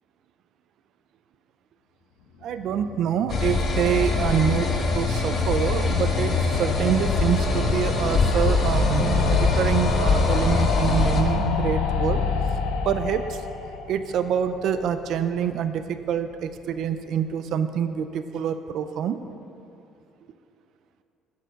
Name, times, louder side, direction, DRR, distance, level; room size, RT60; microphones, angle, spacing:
sound 1, 2.4-15.5 15.8-15.9 16.1-16.2 16.4-16.5, left 5 dB, 90° left, 0.7 m, -29 dB
voice 1, 2.4-12.2 12.9-13.4 13.9-19.2, right 8 dB, 50° right, 10 dB, 0.4 m, -26 dB
sound 2, 3.3-11.2, left 3 dB, 35° left, 1.0 m, -23 dB
8.2 x 6.9 x 6.3 m, 2.7 s
cardioid pair, 165°, 0 cm